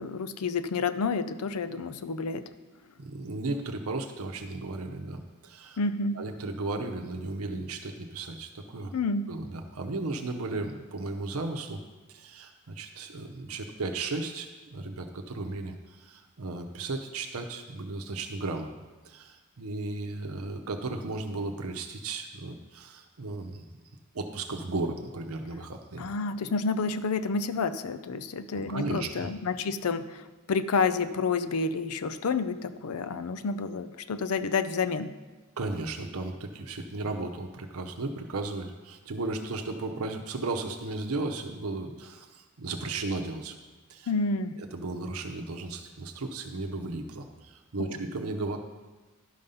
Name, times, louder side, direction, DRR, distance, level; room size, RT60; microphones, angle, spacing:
voice 1, 0.0-2.5 5.8-6.2 8.9-9.3 26.0-35.1 44.1-44.6 47.8-48.0, left 4 dB, 90° left, 13 dB, 0.5 m, -29 dB
voice 2, 3.0-5.8 6.1-9.0 9.3-11.8 12.1-18.7 19.0-23.7 24.1-26.1 28.6-29.3 35.6-43.5 43.9-44.1 44.7-48.6, right 3 dB, 80° right, 3 dB, 0.8 m, -35 dB
11.5 x 5.3 x 5.6 m, 1.3 s
head